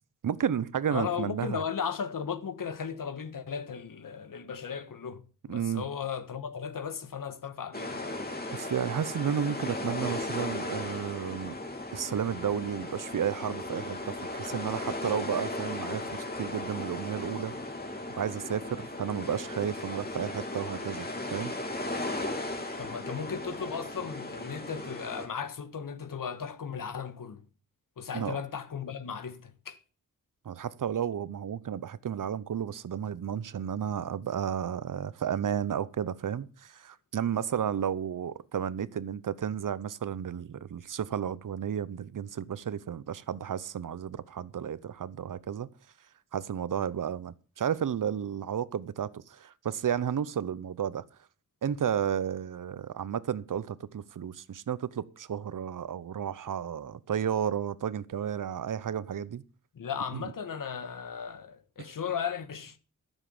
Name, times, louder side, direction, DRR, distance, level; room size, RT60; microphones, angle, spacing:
voice 1, 0.2-1.6 5.5-5.8 8.5-11.6 11.9-17.5 18.2-21.5 28.1-28.4 30.4-45.7 46.3-51.0 51.6-59.4 60.1-60.2, right 8 dB, 75° right, 0.8 m, -32 dB
voice 2, 0.9-8.1 22.8-27.4 28.0-29.8 59.7-62.8, left 7 dB, 80° left, 1.7 m, -36 dB
sound 1, 7.7-25.3, left 2 dB, 30° left, 3.0 m, -36 dB
13.5 x 7.4 x 7.2 m
wide cardioid pair, 125°, 32 cm